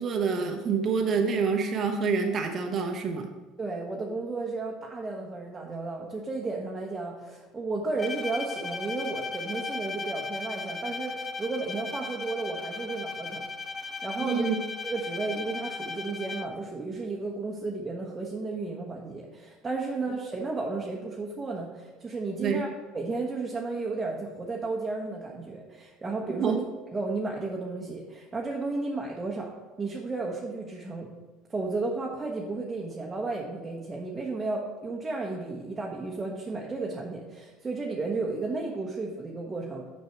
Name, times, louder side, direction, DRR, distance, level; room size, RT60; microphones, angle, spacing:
voice 1, 0.0-3.3 14.2-14.6 22.4-22.6 26.4-26.6, right 5 dB, 40° right, 3 dB, 0.9 m, -27 dB
voice 2, 3.6-13.4 13.8-14.4 14.8-22.7 22.9-26.6 26.9-29.5 29.8-31.1 31.5-39.9, right 3 dB, 20° right, -1 dB, 1.1 m, -33 dB
Bowed string instrument, 8.0-16.7, left 4 dB, 25° left, 0.6 m, -36 dB
6.7 x 5.4 x 4.6 m, 1.3 s
hypercardioid pair, 70°, 0 cm